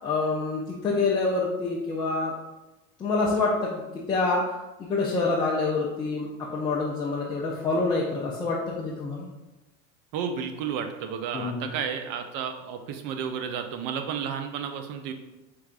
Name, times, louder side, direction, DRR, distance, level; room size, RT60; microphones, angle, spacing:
voice 1, 0.0-2.3 3.0-4.5 4.8-9.3 11.3-11.7, left 3 dB, 10° left, -5 dB, 0.3 m, -27 dB
voice 2, 10.1-15.1, right 7 dB, 55° right, 6 dB, 0.6 m, -32 dB
4.7 x 3.4 x 2.4 m, 1.1 s
hypercardioid pair, 100°, 42 cm